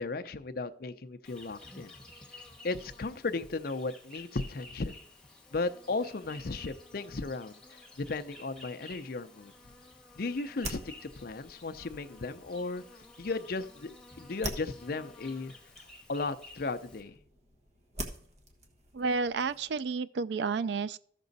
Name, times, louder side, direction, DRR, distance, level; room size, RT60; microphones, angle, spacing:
voice 1, 0.0-1.9 2.6-5.0 5.5-9.5 10.2-12.8 13.2-13.9 14.2-15.5 16.1-17.2, left 3 dB, 55° left, 0.6 m, -35 dB
Insect, 1.2-17.0, left 2 dB, 5° left, 1.5 m, -53 dB
sound 1, 9.5-19.8, right 1 dB, 35° right, 1.2 m, -46 dB
voice 2, 18.9-21.0, right 4 dB, 70° right, 0.4 m, -31 dB
14.0 x 6.2 x 4.0 m
head